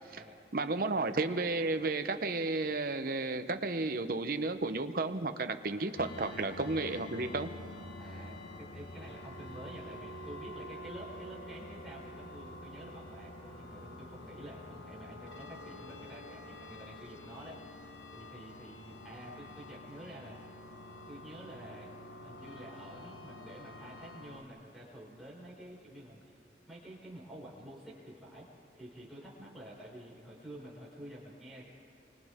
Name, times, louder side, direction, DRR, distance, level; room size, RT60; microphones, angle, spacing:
voice 1, 0.0-0.8 6.2-6.6 7.9-20.4 21.1-21.9 22.2-26.4 26.7-28.5 28.7-31.7, right 1 dB, ahead, -7 dB, 5.4 m, -49 dB
voice 2, 0.5-7.5, right 3 dB, 50° right, 8 dB, 0.9 m, -33 dB
sound 1, 6.0-24.4, left 1 dB, 80° left, 1.2 m, -47 dB
29.5 x 25.0 x 3.6 m, 2.7 s
head